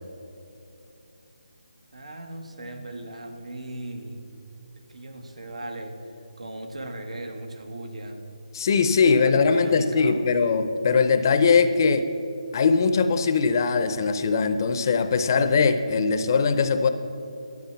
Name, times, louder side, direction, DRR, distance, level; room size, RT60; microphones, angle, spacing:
voice 1, 1.9-4.3 4.9-6.0 6.4-8.2 9.0-10.4, right 1 dB, 80° right, 5 dB, 1.4 m, -37 dB
voice 2, 8.5-12.1 12.5-16.9, left 5 dB, 35° left, 10 dB, 0.6 m, -21 dB
12.0 x 7.5 x 5.8 m, 2.8 s
figure-of-eight pair, 160°, 3 cm